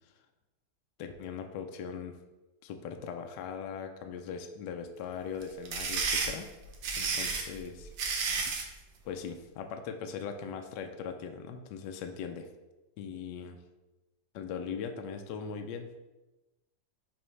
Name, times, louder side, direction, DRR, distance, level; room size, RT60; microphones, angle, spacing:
voice 1, 1.0-2.2 2.6-6.5 7.0-7.9 9.0-12.5 13.0-13.6 14.3-15.9, left 6 dB, 75° left, 5 dB, 1.2 m, -40 dB
sound 1, 5.4-8.7, right 4 dB, 85° right, 1.7 m, -32 dB
10.0 x 3.5 x 3.2 m, 1.1 s
omnidirectional pair, 2.1 m